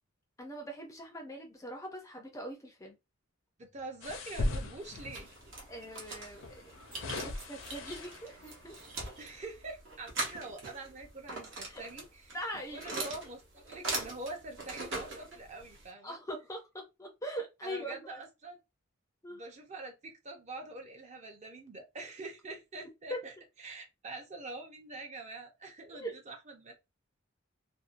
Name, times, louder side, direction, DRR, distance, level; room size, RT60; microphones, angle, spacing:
voice 1, 0.4-3.0 5.7-6.6 7.0-8.8 11.7-11.8 12.3-13.0 16.0-18.2 19.2-19.4 23.1-23.2 25.9-26.2, equal, 15° left, 0.4 m, -42 dB
voice 2, 3.6-5.3 9.2-12.1 12.7-16.2 17.6-18.6 19.3-23.3 23.6-26.7, right 2 dB, 35° right, 0.5 m, -45 dB
sound 1, 4.0-5.4 6.4-8.4 9.0-9.2, left 2 dB, 70° left, 0.5 m, -37 dB
sound 2, 4.8-15.9, right 2 dB, 65° right, 0.9 m, -42 dB
2.6 x 2.1 x 2.4 m
head